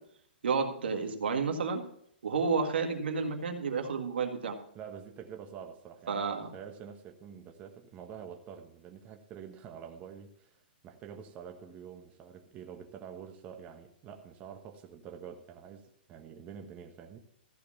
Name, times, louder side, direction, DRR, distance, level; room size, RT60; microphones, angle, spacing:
voice 1, 0.4-1.8 2.2-4.6 6.1-6.5, right 5 dB, 80° right, 4 dB, 1.9 m, -31 dB
voice 2, 4.7-10.6 10.8-17.2, right 7 dB, 25° right, 4 dB, 1.3 m, -47 dB
14.5 x 5.1 x 7.1 m, 0.69 s
hypercardioid pair, 140°, 6 cm